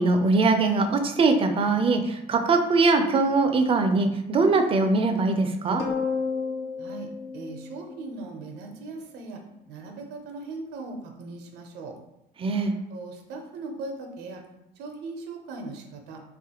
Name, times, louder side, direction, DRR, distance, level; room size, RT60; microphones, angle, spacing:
voice 1, 0.0-5.8 12.4-12.7, right 3 dB, 35° right, 6 dB, 0.4 m, -22 dB
sound 1, 5.8-8.4, left 5 dB, 85° left, 0.5 m, -31 dB
voice 2, 7.3-9.4 9.7-11.9 12.9-14.4 14.8-16.2, right 3 dB, 85° right, 4 dB, 0.6 m, -39 dB
3.2 x 2.4 x 2.8 m, 0.86 s
cardioid pair, 110°, 17 cm